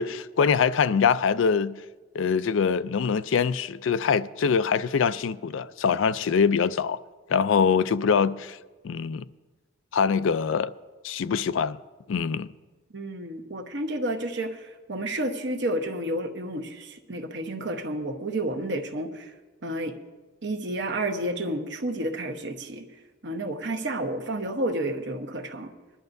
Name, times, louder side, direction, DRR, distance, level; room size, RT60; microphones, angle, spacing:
voice 1, 0.0-1.7 2.1-7.0 7.3-8.6 8.8-9.3 9.9-10.7 11.0-11.8 12.1-12.5, left 6 dB, 70° left, 0.4 m, -23 dB
voice 2, 12.9-19.3 19.6-19.9 20.4-22.9 23.2-25.7, right 1 dB, 60° right, 1.0 m, -30 dB
21.0 x 11.5 x 2.7 m
head